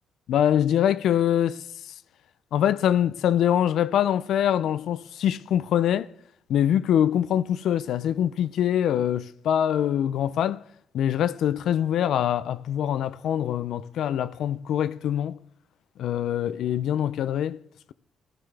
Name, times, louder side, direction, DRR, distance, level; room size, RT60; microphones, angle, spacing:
voice 1, 0.3-1.9 2.5-6.1 6.5-10.6 10.9-15.4 16.0-17.6, left 10 dB, 75° left, 0.4 m, -24 dB
15.0 x 11.5 x 3.3 m
cardioid pair, 90°, 0 cm